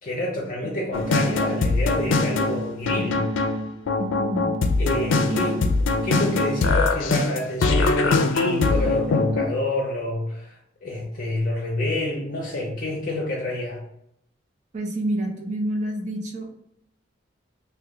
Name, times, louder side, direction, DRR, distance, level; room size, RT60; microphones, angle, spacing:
voice 1, 0.0-3.3 4.8-13.8, left 1 dB, 45° left, -3 dB, 0.6 m, -28 dB
sound 1, 0.9-9.4, left 3 dB, 90° left, 0.4 m, -22 dB
voice 2, 4.0-4.5 5.3-5.4 14.7-16.5, right 1 dB, 40° right, 2 dB, 0.6 m, -28 dB
2.9 x 2.2 x 3.5 m, 0.76 s
head